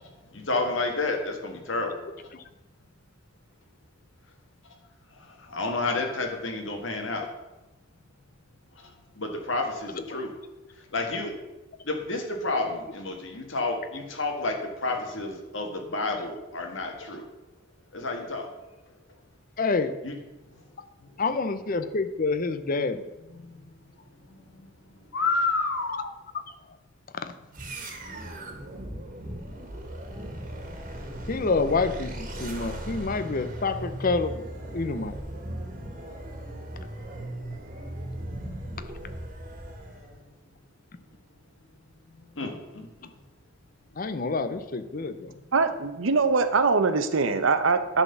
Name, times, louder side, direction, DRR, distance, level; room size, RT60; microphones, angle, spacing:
voice 1, 0.3-1.9 5.5-7.3 9.2-10.3 10.9-11.3 11.9-17.2 17.9-18.5 20.0-20.1 23.4-23.5 24.6-24.7 25.1-26.1 42.4-43.1, left 3 dB, 70° left, 3 dB, 1.7 m, -30 dB
voice 2, 19.6-19.9 21.2-23.0 27.2-27.3 31.3-34.5 34.7-35.2 44.0-45.3, left 3 dB, 45° left, 10 dB, 0.6 m, -27 dB
sound 1, 27.5-40.2, right 1 dB, 45° right, 1.7 m, -37 dB
voice 3, 45.5-48.0, right 4 dB, 85° right, 10 dB, 0.8 m, -22 dB
10.5 x 4.2 x 6.9 m, 1.0 s
head